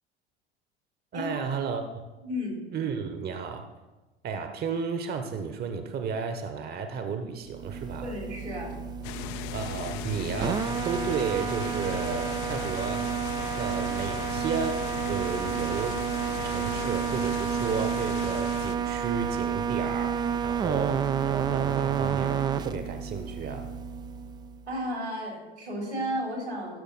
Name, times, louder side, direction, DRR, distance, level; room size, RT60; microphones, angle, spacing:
voice 1, 1.1-2.1 2.7-3.7 4.2-8.1 9.5-13.1 13.6-16.0 16.4-23.7, right 5 dB, 30° right, 7 dB, 0.9 m, -33 dB
voice 2, 2.2-2.6 8.0-8.7 24.7-26.8, equal, 85° right, -1 dB, 3.5 m, -33 dB
sound 1, 7.5-24.7, right 7 dB, 15° right, 0.3 m, -30 dB
sound 2, 9.0-18.8, left 13 dB, 45° left, 0.5 m, -38 dB
15.0 x 6.9 x 4.0 m, 1.1 s
figure-of-eight pair, 75°, 33 cm